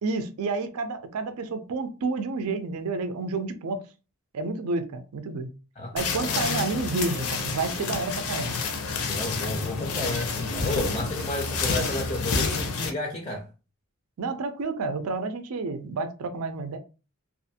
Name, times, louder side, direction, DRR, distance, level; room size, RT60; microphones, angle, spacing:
voice 1, 0.0-3.9 4.3-5.5 5.9-8.6 14.2-16.8, right 3 dB, 80° right, 0.4 m, -30 dB
sound 1, 6.0-12.9, left 4 dB, 85° left, 0.6 m, -29 dB
voice 2, 9.0-13.5, left 2 dB, 25° left, 0.4 m, -32 dB
2.5 x 2.4 x 2.6 m
head